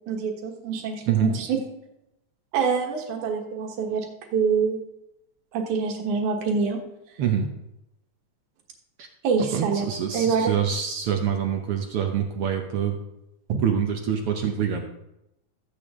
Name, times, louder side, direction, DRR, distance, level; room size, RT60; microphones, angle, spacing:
voice 1, 0.1-1.6 2.5-4.1 4.3-4.8 5.5-6.8 9.2-9.9 10.1-10.6, right 5 dB, 90° right, 1 dB, 2.9 m, -25 dB
voice 2, 7.2-7.5 9.0-9.1 9.5-13.0 13.6-14.9, right 8 dB, 65° right, 3 dB, 1.5 m, -25 dB
14.0 x 8.3 x 3.7 m, 0.87 s
omnidirectional pair, 3.3 m